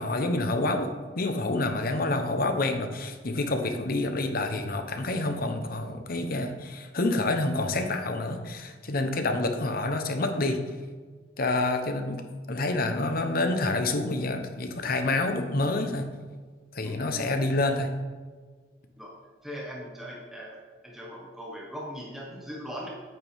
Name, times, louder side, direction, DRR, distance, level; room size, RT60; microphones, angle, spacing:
voice 1, 0.0-10.6 11.4-12.2 12.5-16.1 16.7-17.9, left 2 dB, 55° left, 6 dB, 0.9 m, -28 dB
voice 2, 16.8-17.4 19.0-19.1 19.4-20.6 20.8-22.9, equal, ahead, -4 dB, 1.3 m, -40 dB
9.0 x 8.8 x 3.6 m, 1.5 s
head